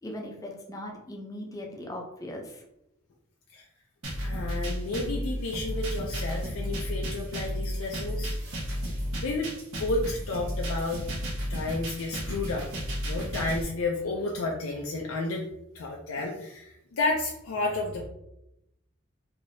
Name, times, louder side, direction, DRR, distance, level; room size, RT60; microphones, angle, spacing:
voice 1, 0.0-2.6, left 1 dB, 15° left, 1 dB, 0.5 m, -39 dB
sound 1, 4.0-13.6, equal, 75° right, 1.2 m, -33 dB
voice 2, 4.2-8.4 9.2-11.0 11.5-12.6 13.1-15.4 15.7-18.1, left 2 dB, 80° left, -1 dB, 0.4 m, -31 dB
3.3 x 2.7 x 2.6 m, 0.85 s
head